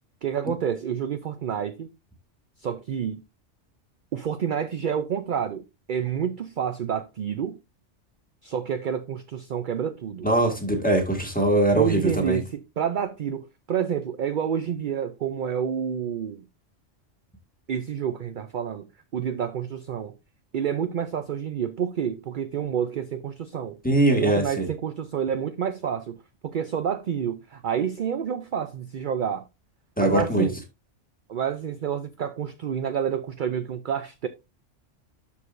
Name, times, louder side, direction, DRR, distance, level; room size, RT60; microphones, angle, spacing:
voice 1, 0.2-1.9 2.6-3.2 4.1-7.6 8.4-10.3 11.7-16.4 17.7-18.9 19.1-20.1 20.5-23.8 24.1-29.5 30.0-30.6 31.3-34.3, right 8 dB, 55° right, 0.6 m, -29 dB
voice 2, 10.2-12.4 23.8-24.7 30.0-30.5, right 2 dB, 5° left, 1.8 m, -21 dB
12.5 x 4.9 x 2.5 m
omnidirectional pair, 1.3 m